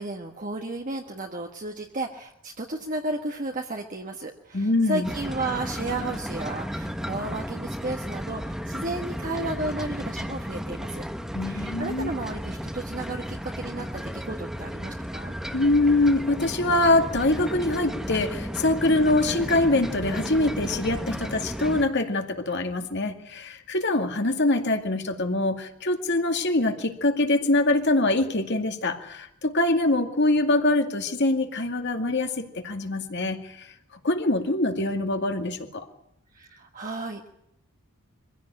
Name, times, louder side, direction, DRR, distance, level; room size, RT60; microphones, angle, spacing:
voice 1, 0.0-11.0 11.4-15.3 36.3-37.3, right 2 dB, 35° right, 2 dB, 1.5 m, -33 dB
voice 2, 4.5-5.1 11.3-12.1 15.5-33.7 34.0-35.9, left 2 dB, 50° left, 5 dB, 2.2 m, -24 dB
sound 1, 5.0-21.8, equal, ahead, 1.2 m, -34 dB
24.0 x 16.0 x 10.0 m, 0.79 s
head